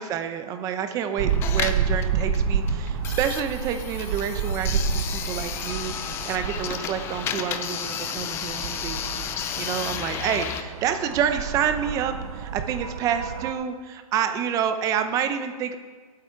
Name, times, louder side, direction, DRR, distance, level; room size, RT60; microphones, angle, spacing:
voice 1, 0.0-9.0 9.5-15.8, right 8 dB, 15° right, 8 dB, 0.7 m, -28 dB
sound 1, 1.2-13.5, right 6 dB, 45° right, 1.0 m, -30 dB
sound 2, 1.3-10.6, left 9 dB, 15° left, 0.5 m, -32 dB
22.5 x 8.5 x 4.7 m, 1.5 s
hypercardioid pair, 160°, 19 cm